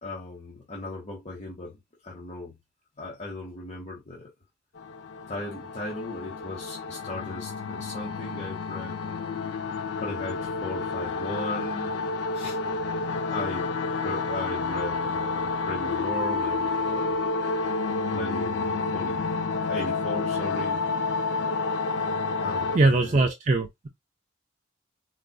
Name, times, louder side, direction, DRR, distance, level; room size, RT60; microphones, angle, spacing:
voice 1, 0.0-1.8 2.0-2.6 3.0-4.3 5.3-9.4 10.0-12.0 12.3-12.6 13.3-13.7 14.0-17.2 18.1-19.3 19.7-20.9 22.4-23.3, left 1 dB, 35° left, 1.1 m, -37 dB
sound 1, 4.8-22.8, left 4 dB, 65° left, 0.4 m, -29 dB
voice 2, 22.7-23.9, right 2 dB, 40° right, 0.4 m, -21 dB
4.0 x 2.5 x 2.2 m
head